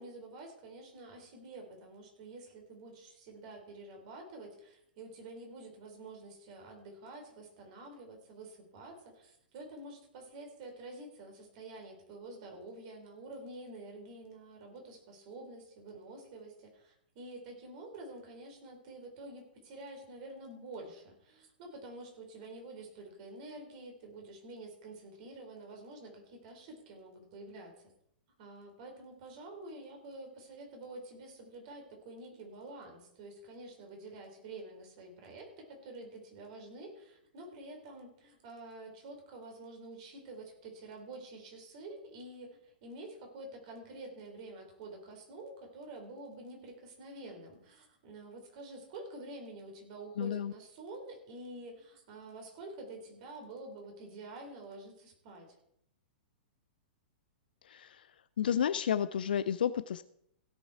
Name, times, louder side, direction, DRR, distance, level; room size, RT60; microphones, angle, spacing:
voice 1, 0.0-27.8 28.4-55.6, right 2 dB, 45° right, 2 dB, 4.0 m, -48 dB
voice 2, 50.2-50.5 57.6-58.1 58.4-60.0, left 9 dB, 60° left, 14 dB, 0.5 m, -31 dB
16.5 x 7.1 x 4.7 m, 0.73 s
figure-of-eight pair, 110°, 6 cm